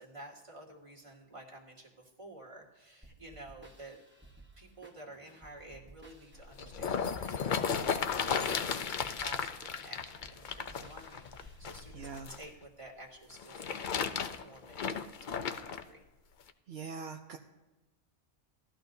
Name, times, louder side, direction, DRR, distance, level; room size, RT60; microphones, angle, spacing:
voice 1, 0.0-4.0 4.6-14.8 15.2-16.0, right 1 dB, 25° right, -4 dB, 1.9 m, -51 dB
sound 1, 3.0-12.6, right 2 dB, 10° right, 1.0 m, -57 dB
sound 2, 6.3-12.4 13.3-15.8 16.5-16.6, left 6 dB, 55° left, 0.7 m, -35 dB
voice 2, 11.9-12.3 16.7-17.4, right 5 dB, 70° right, 3 dB, 0.9 m, -42 dB
18.0 x 12.5 x 2.7 m, 1.1 s
omnidirectional pair, 1.1 m